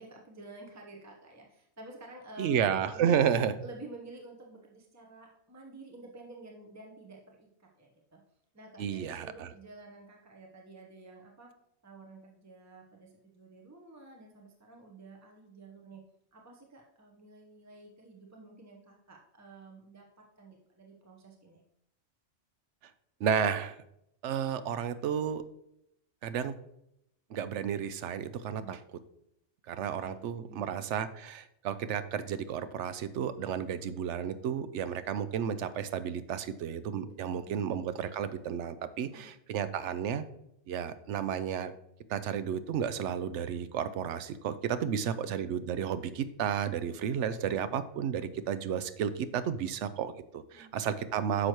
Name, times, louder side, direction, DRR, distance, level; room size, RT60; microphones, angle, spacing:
voice 1, 0.0-2.6 2.9-3.3 3.6-8.2 8.5-11.5 11.8-16.0 16.3-21.6 28.6-28.8 29.7-30.7 37.1-37.6 39.1-39.3 44.9-45.5 50.5-50.8, right 2 dB, 15° right, 0 dB, 1.0 m, -51 dB
voice 2, 2.4-3.5 8.8-9.5 23.2-23.8 24.2-25.4 26.2-26.5 27.3-28.8 29.7-40.2 40.7-41.7 42.1-51.5, right 8 dB, 80° right, 12 dB, 0.9 m, -32 dB
9.7 x 6.4 x 3.0 m, 0.79 s
omnidirectional pair, 1.2 m